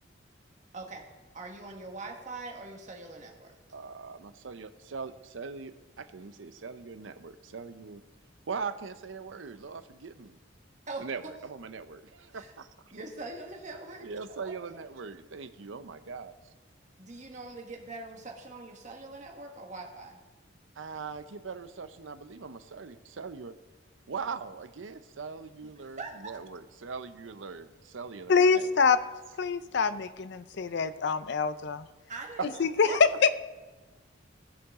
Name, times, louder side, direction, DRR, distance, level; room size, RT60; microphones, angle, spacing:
voice 1, 0.7-1.1 1.3-3.5 10.9-11.3 12.3-12.5 12.9-14.1 14.4-14.8 17.0-20.2 25.8-26.4 32.1-32.5 32.8-33.3, right 3 dB, 40° right, 1 dB, 1.6 m, -42 dB
voice 2, 3.7-8.0 8.5-10.4 11.0-12.7 14.0-16.3 20.8-23.5 24.1-28.7 32.4-33.0, right 5 dB, 80° right, 11 dB, 0.6 m, -40 dB
voice 3, 28.3-29.0 29.4-31.9 32.6-33.3, left 5 dB, 65° left, 13 dB, 0.5 m, -25 dB
18.0 x 6.2 x 3.6 m, 1.2 s
head